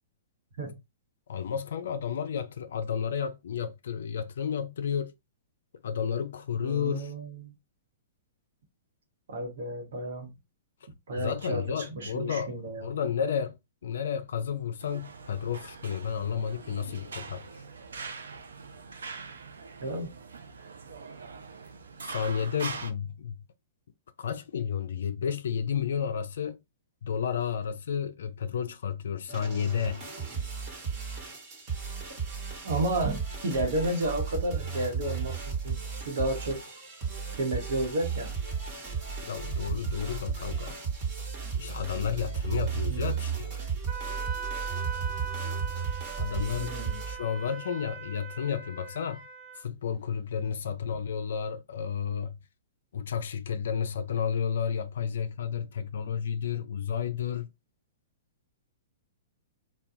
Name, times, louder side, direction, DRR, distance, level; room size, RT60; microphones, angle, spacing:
voice 1, 1.3-5.1 5.8-7.1 11.1-12.5 12.8-17.4 22.0-23.3 24.2-26.6 27.0-30.0 39.2-40.8 41.5-43.5 46.2-46.7 47.1-49.2 49.6-52.4 52.9-57.5, left 7 dB, 75° left, 0.3 m, -31 dB
voice 2, 6.6-7.5 9.3-10.3 11.1-13.0 19.8-20.1 32.6-36.6 37.4-38.3 42.9-43.1 46.6-47.0, right 1 dB, 70° right, 1.0 m, -32 dB
sound 1, 14.8-22.9, right 4 dB, 85° right, 0.4 m, -43 dB
sound 2, 29.3-47.2, right 6 dB, 35° right, 1.3 m, -34 dB
Wind instrument woodwind instrument, 43.9-49.6, right 6 dB, 20° right, 0.6 m, -40 dB
2.3 x 2.2 x 2.7 m
hypercardioid pair, 135°, 0 cm